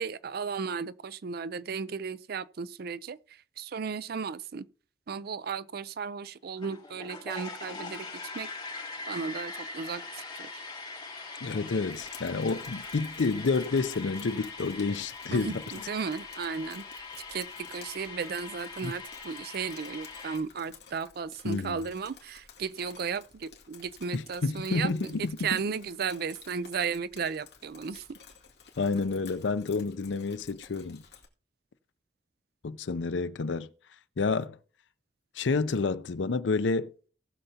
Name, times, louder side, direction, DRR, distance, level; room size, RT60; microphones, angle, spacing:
voice 1, 0.0-3.2 3.6-4.6 5.1-8.1 8.3-8.5 9.1-10.6 15.3-16.8 17.3-24.9 25.2-28.2, right 5 dB, 55° right, 0.4 m, -35 dB
sound 1, 6.6-20.4, left 3 dB, 25° left, 5.1 m, -42 dB
voice 2, 11.4-15.9 18.8-18.9 21.4-21.8 24.1-25.5 28.8-31.0 32.6-33.7 34.2-34.6 35.4-36.9, left 4 dB, 85° left, 0.6 m, -29 dB
Drip, 11.9-31.3, left 7 dB, 65° left, 2.3 m, -54 dB
19.0 x 6.8 x 2.8 m
head